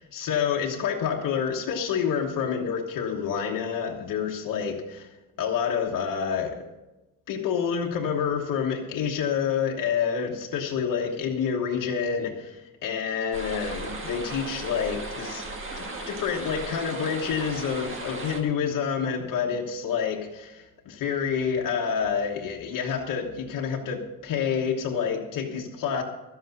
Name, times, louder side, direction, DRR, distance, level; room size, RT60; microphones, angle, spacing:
voice 1, 0.1-6.6 7.3-15.4 15.8-26.0, left 7 dB, 65° left, 0 dB, 1.3 m, -28 dB
sound 1, 13.3-18.4, right 2 dB, 35° right, 1.7 m, -36 dB
12.5 x 8.1 x 6.6 m, 1.1 s
cardioid pair, 155°, 36 cm